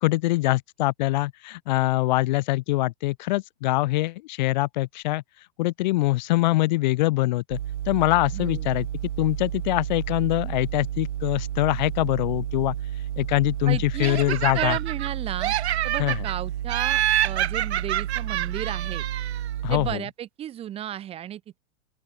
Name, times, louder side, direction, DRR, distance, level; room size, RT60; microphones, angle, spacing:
voice 1, 0.0-7.6 7.8-8.9 9.2-12.7 13.2-14.8 16.0-16.2 19.6-20.0, left 19 dB, 40° left, 1.6 m, -24 dB
sound 1, 7.5-20.0, right 11 dB, 85° right, 2.5 m, -31 dB
voice 2, 8.3-8.6 13.7-15.5 15.8-19.1 19.7-21.6, right 11 dB, 15° right, 2.7 m, -33 dB
Laughter, 14.0-15.1 15.4-16.3 16.7-19.5, right 12 dB, 65° right, 2.5 m, -27 dB
open air
supercardioid pair, 170°, 35 cm